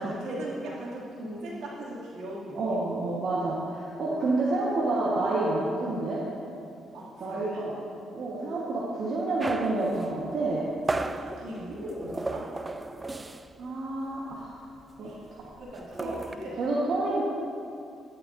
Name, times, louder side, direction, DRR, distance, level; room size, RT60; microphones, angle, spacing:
voice 1, 0.0-2.6 6.9-7.7 11.1-12.6 15.0-15.2 15.6-16.7, right 1 dB, 85° right, -6 dB, 2.6 m, -38 dB
voice 2, 2.5-6.2 7.2-7.7 8.1-10.7 13.6-14.6 15.0-15.1 16.0-16.1 16.6-17.2, right 2 dB, 65° right, -6 dB, 1.4 m, -28 dB
sound 1, 9.4-13.7 13.9-14.2 14.4-16.4, right 2 dB, 20° right, 0.4 m, -35 dB
13.0 x 9.9 x 2.7 m, 2.5 s
cardioid pair, 90°, 0 cm